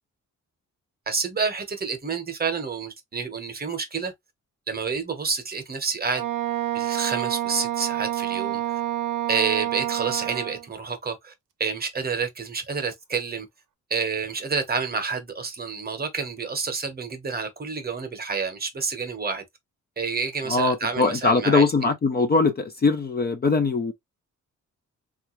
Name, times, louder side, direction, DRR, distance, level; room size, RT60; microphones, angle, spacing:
voice 1, 1.1-4.1 4.7-6.2 6.7-8.6 9.3-11.3 11.6-13.5 13.9-19.4 20.0-21.7, right 5 dB, 30° right, 0.8 m, -29 dB
Wind instrument woodwind instrument, 6.1-10.6, right 13 dB, 85° right, 0.6 m, -28 dB
voice 2, 20.5-23.9, left 3 dB, 30° left, 0.5 m, -21 dB
3.3 x 2.4 x 3.0 m
wide cardioid pair, 135°, 31 cm